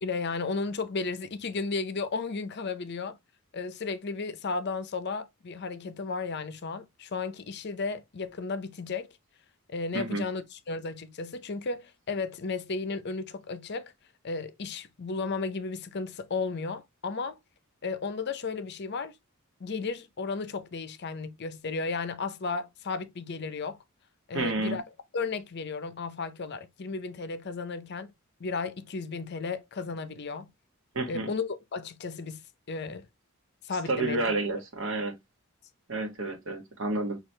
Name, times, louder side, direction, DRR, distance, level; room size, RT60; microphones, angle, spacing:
voice 1, 0.0-3.2 3.5-9.1 9.7-13.9 14.2-17.4 17.8-19.1 19.6-23.8 24.3-24.8 25.1-28.1 28.4-30.5 31.1-32.4 32.7-33.1 33.6-34.2, left 4 dB, 50° left, 0.6 m, -34 dB
voice 2, 24.3-24.8 30.9-31.3 33.8-35.1 35.9-37.2, right 2 dB, 60° right, 1.3 m, -30 dB
6.2 x 2.4 x 3.2 m
head